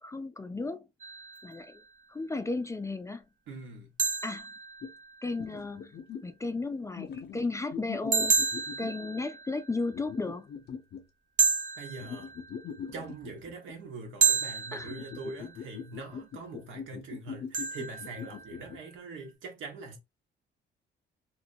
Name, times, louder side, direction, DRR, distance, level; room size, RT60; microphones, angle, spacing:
voice 1, 0.0-0.9 1.4-1.8 2.1-3.2 4.2-4.5 5.2-6.0 6.2-8.3 8.8-10.5 14.7-14.9, left 3 dB, 15° left, 0.3 m, -34 dB
sound 1, 1.0-1.8 4.0-5.4 8.1-9.9 11.4-12.8 14.2-15.6 17.5-18.8, right 5 dB, 40° right, 0.5 m, -31 dB
voice 2, 3.5-3.9 11.8-12.3 12.9-20.0, right 3 dB, 80° right, 1.2 m, -43 dB
sound 2, 4.8-4.9 5.4-6.3 7.0-9.1 9.9-11.0 12.0-13.7 14.8-18.8, left 7 dB, 55° left, 0.6 m, -42 dB
2.8 x 2.6 x 2.6 m
cardioid pair, 90°, 20 cm